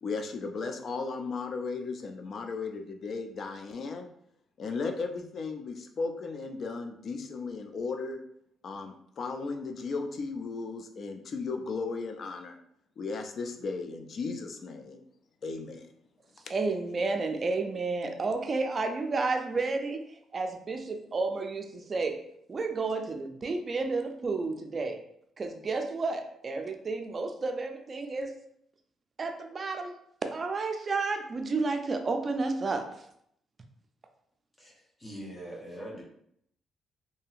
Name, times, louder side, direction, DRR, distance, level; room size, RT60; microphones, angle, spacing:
voice 1, 0.0-4.1 4.6-8.2 8.6-12.6 13.0-15.0 15.4-15.9 16.4-16.5, left 4 dB, 55° left, 5 dB, 0.4 m, -35 dB
voice 2, 16.5-20.0 20.3-22.2 22.5-25.0 25.4-28.3 29.2-29.9 30.2-32.8, right 3 dB, 40° right, 5 dB, 0.4 m, -31 dB
voice 3, 34.6-36.0, right 1 dB, 20° left, -4 dB, 0.7 m, -42 dB
2.7 x 2.7 x 2.4 m, 0.72 s
cardioid pair, 90°, 0 cm